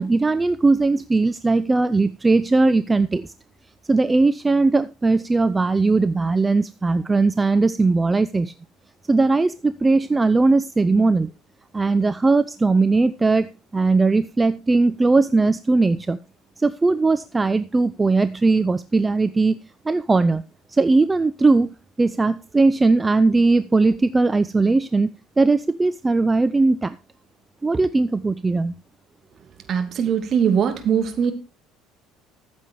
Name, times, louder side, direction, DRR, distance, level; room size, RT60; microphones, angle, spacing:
voice 1, 0.0-3.3 3.9-8.5 9.1-11.3 11.7-16.2 16.6-19.6 19.8-20.4 20.7-25.1 25.4-27.0 27.6-28.7, right 3 dB, 20° right, 13 dB, 0.6 m, -19 dB
voice 2, 29.7-31.3, right 7 dB, 45° right, 7 dB, 2.5 m, -21 dB
14.0 x 7.4 x 4.7 m, 0.29 s
hypercardioid pair, 60°, 0 cm